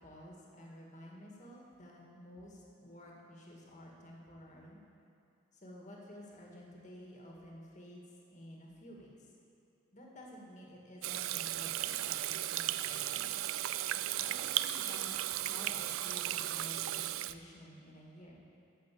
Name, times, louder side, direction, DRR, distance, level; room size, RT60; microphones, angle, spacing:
voice 1, 0.0-4.8 5.5-8.0 8.3-9.3 9.9-13.3 14.2-18.4, equal, 35° left, -2 dB, 2.0 m, -52 dB
Water tap faucet / Sink (filling or washing), 11.0-17.3, right 13 dB, 90° right, 0.4 m, -35 dB
13.5 x 6.1 x 8.5 m, 2.5 s
head